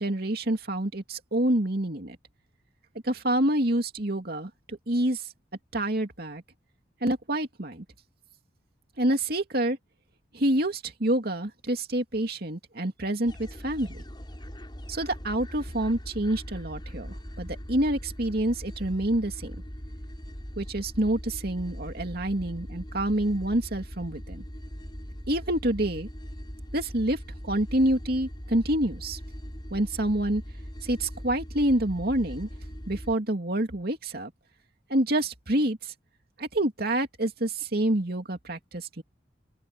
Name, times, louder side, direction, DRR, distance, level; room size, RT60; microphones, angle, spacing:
voice 1, 0.0-2.2 3.0-5.2 5.7-6.4 7.0-7.8 9.0-9.8 10.3-14.0 14.9-19.5 20.6-24.4 25.3-26.1 26.7-27.2 27.4-29.2 29.7-30.4 30.8-32.5 32.9-34.3 34.9-35.9 36.4-39.0, right 1 dB, 55° right, 2.6 m, -27 dB
sound 1, 13.2-33.1, equal, 25° left, 4.6 m, -40 dB
open air
head